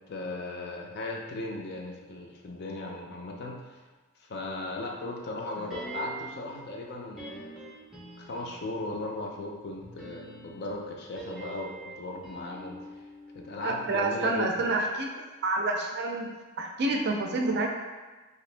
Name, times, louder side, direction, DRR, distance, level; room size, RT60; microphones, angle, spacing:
voice 1, 0.0-3.8 4.2-7.5 8.2-12.8 13.3-14.8, left 2 dB, 50° left, 0 dB, 0.4 m, -37 dB
sound 1, 5.7-6.5 7.1-8.8 9.8-14.0 14.3-14.4, right 2 dB, ahead, 0.6 m, -44 dB
voice 2, 13.6-15.1 15.4-16.3 16.6-17.7, right 2 dB, 55° right, 2 dB, 0.4 m, -28 dB
2.9 x 2.5 x 3.3 m, 1.3 s
head